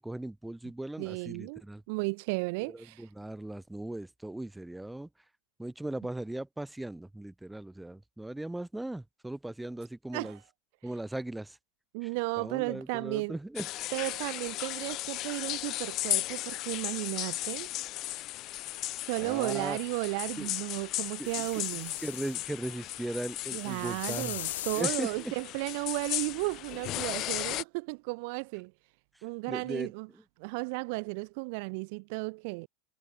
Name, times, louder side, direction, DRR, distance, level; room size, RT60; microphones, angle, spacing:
voice 1, 0.0-1.8 2.6-5.1 5.6-10.4 10.8-11.6 12.0-12.1 12.4-13.7 19.2-19.8 20.4-20.5 21.2-21.6 22.0-24.4 24.8-25.3 29.5-30.2, right 1 dB, 5° right, 3.1 m, -38 dB
voice 2, 1.0-1.6 1.9-3.1 10.1-10.4 11.9-13.4 13.9-17.7 19.0-21.9 23.5-28.7 29.2-30.1 30.4-32.7, right 31 dB, 60° right, 0.5 m, -34 dB
sound 1, 13.6-27.6, left 16 dB, 45° left, 0.8 m, -36 dB
sound 2, 21.2-22.4 23.6-24.9 27.1-27.2, left 13 dB, 85° left, 0.7 m, -40 dB
supercardioid pair, 120°, 0 cm